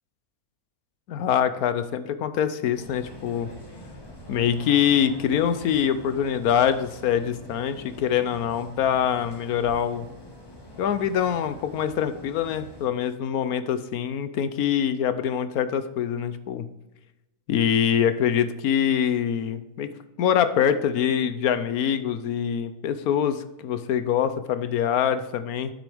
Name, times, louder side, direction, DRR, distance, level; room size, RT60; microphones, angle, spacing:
voice 1, 1.1-3.5 4.3-10.1 10.8-16.7 17.5-25.7, left 9 dB, 75° left, 11 dB, 1.2 m, -24 dB
sound 1, 2.7-12.9, left 1 dB, 15° left, 1.2 m, -45 dB
9.2 x 7.7 x 3.5 m, 0.99 s
omnidirectional pair, 1.6 m